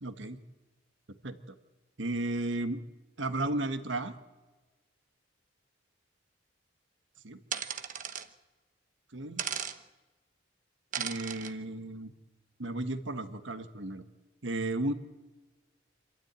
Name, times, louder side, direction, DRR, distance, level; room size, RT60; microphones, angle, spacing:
voice 1, 0.0-0.4 1.1-1.5 2.0-2.8 3.2-4.1 7.2-7.4 9.1-9.5 11.0-12.1 12.6-14.1 14.4-14.9, right 2 dB, 75° right, 9 dB, 1.5 m, -34 dB
sound 1, 7.5-8.3 9.4-9.8 10.9-11.5, right 8 dB, 40° right, 1.0 m, -35 dB
27.0 x 12.5 x 8.9 m, 1.2 s
head